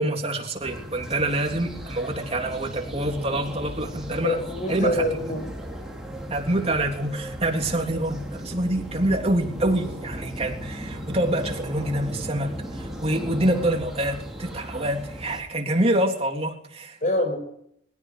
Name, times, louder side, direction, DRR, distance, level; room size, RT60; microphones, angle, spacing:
voice 1, 0.0-4.4 4.7-5.1 6.3-17.0, right 1 dB, 35° right, 2 dB, 3.4 m, -26 dB
sound 1, 0.6-15.4, equal, 5° right, 5.4 m, -36 dB
voice 2, 4.2-5.5 17.0-17.4, left 1 dB, 45° left, 7 dB, 6.0 m, -25 dB
23.5 x 16.5 x 9.5 m, 0.73 s
head